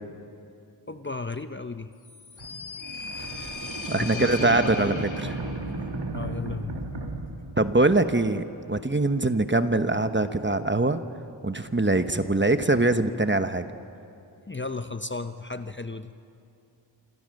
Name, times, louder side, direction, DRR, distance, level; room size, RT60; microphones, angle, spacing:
voice 1, 0.9-1.9 3.8-5.1 6.1-6.8 14.5-16.1, left 3 dB, 25° left, 9 dB, 0.8 m, -34 dB
sound 1, 2.0-5.7, left 4 dB, 85° left, 2.2 m, -38 dB
sound 2, 2.4-8.2, right 2 dB, 65° right, 2.4 m, -35 dB
voice 2, 3.9-5.3 7.6-11.0 11.4-13.6, right 2 dB, 25° right, 9 dB, 1.0 m, -23 dB
26.5 x 26.5 x 6.5 m, 2.6 s
wide cardioid pair, 75°, 45 cm